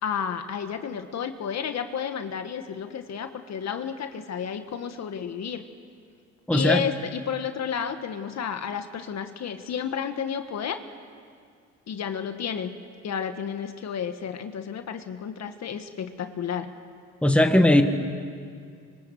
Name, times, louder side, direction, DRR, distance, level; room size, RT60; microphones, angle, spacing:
voice 1, 0.0-5.7 6.5-10.8 11.9-12.8 13.0-16.7, left 7 dB, 60° left, 7 dB, 1.5 m, -31 dB
voice 2, 6.5-6.8 17.2-17.8, left 1 dB, 5° left, 5 dB, 2.0 m, -18 dB
25.0 x 24.5 x 8.1 m, 2.2 s
cardioid pair, 90°, 30 cm